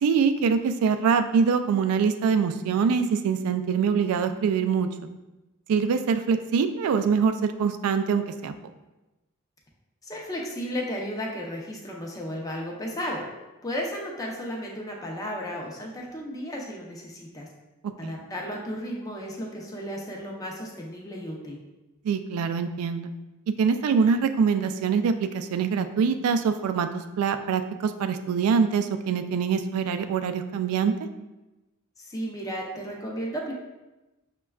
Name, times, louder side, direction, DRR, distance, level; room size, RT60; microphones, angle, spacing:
voice 1, 0.0-4.9 5.7-8.5 17.8-18.1 22.0-23.1 23.6-30.9, right 6 dB, 90° right, 12 dB, 0.3 m, -24 dB
voice 2, 10.0-13.2 13.6-17.5 18.0-21.6 32.0-33.5, equal, 15° left, -2 dB, 0.5 m, -34 dB
6.0 x 2.2 x 2.3 m, 1.0 s
head